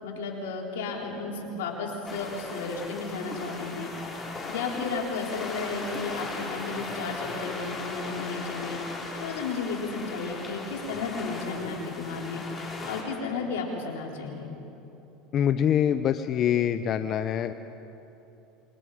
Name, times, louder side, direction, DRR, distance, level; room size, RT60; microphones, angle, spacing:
voice 1, 0.0-3.9 4.5-8.8 9.2-12.4 12.8-14.5, left 4 dB, 85° left, -1 dB, 4.0 m, -33 dB
sound 1, 2.0-13.0, left 3 dB, 25° left, 4.9 m, -37 dB
voice 2, 15.3-17.5, left 9 dB, 45° left, 10 dB, 0.7 m, -24 dB
26.5 x 22.5 x 5.1 m, 3.0 s
supercardioid pair, 105°, 0 cm